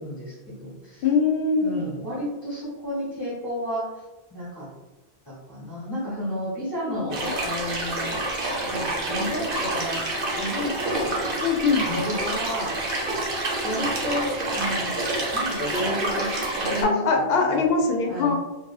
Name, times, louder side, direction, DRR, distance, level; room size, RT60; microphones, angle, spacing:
voice 1, 0.0-1.1 1.6-3.9 4.3-4.7 5.3-8.2 8.6-11.2 11.8-12.7 13.4-15.0 15.3-17.2 17.5-17.7 18.1-18.3, equal, 25° left, -9 dB, 0.9 m, -32 dB
voice 2, 1.0-1.8 11.4-11.9 16.8-18.3, left 4 dB, 70° left, 2 dB, 0.8 m, -22 dB
sound 1, 7.1-16.8, right 2 dB, 60° right, 0.9 m, -28 dB
2.6 x 2.4 x 2.3 m, 1.1 s
omnidirectional pair, 1.1 m